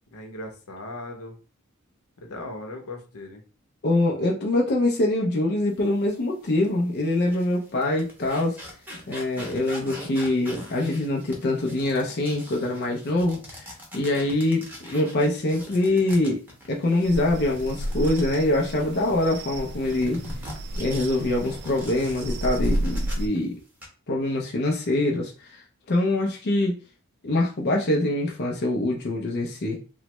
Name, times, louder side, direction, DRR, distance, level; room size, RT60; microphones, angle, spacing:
voice 1, 0.1-1.4 2.2-3.4, left 2 dB, 80° left, 3 dB, 0.8 m, -38 dB
voice 2, 3.8-8.6 9.1-16.4 16.7-20.2 20.8-23.5 24.1-25.6 25.9-26.8 27.2-29.8, left 1 dB, 50° left, -1 dB, 0.5 m, -24 dB
sound 1, 6.4-6.6 7.1-19.4 19.8-23.4 23.6-23.9, equal, 10° right, 0.7 m, -42 dB
sound 2, 17.0-23.3, equal, 50° right, 0.3 m, -31 dB
3.1 x 2.0 x 3.0 m, 0.36 s
head